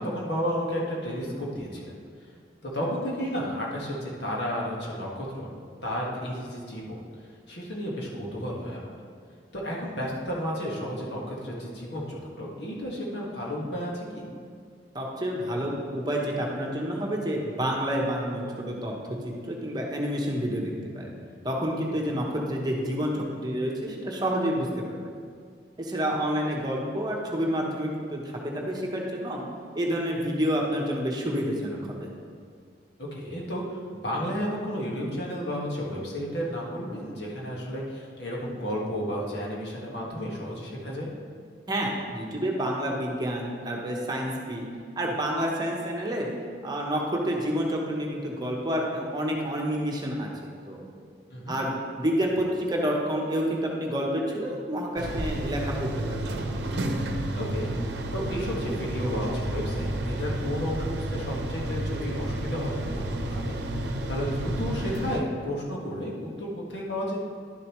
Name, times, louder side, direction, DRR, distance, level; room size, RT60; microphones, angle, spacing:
voice 1, 0.0-1.9 2.6-5.5 5.8-7.0 7.5-8.9 9.5-14.2 22.1-22.2 33.0-41.1 51.3-51.6 57.3-57.7 58.1-67.2, equal, 75° left, -4 dB, 1.7 m, -32 dB
voice 2, 14.9-18.9 19.2-21.1 21.4-25.0 25.8-29.4 29.7-32.1 41.7-44.6 45.0-46.3 46.6-50.3 50.7-50.8 51.5-56.4, equal, 25° right, -1 dB, 1.0 m, -29 dB
sound 1, 55.0-65.2, right 1 dB, 75° right, 0.7 m, -31 dB
11.0 x 6.9 x 3.1 m, 2.1 s
head